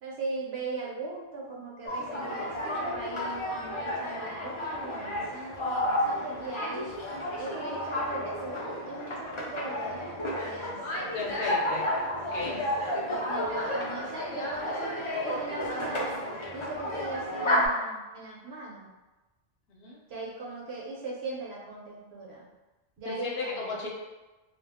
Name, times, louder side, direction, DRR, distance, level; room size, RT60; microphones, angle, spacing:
voice 1, 0.0-6.9 7.4-11.4 12.3-16.2 16.5-18.9 20.1-22.5 23.0-23.8, right 2 dB, 75° right, -4 dB, 1.0 m, -39 dB
sound 1, 1.8-17.7, left 1 dB, 50° left, 0.3 m, -32 dB
voice 2, 11.1-11.8 12.2-12.6 19.7-20.0 23.0-23.9, left 3 dB, 70° left, -2 dB, 0.8 m, -35 dB
2.4 x 2.0 x 3.4 m, 1.1 s
omnidirectional pair, 1.1 m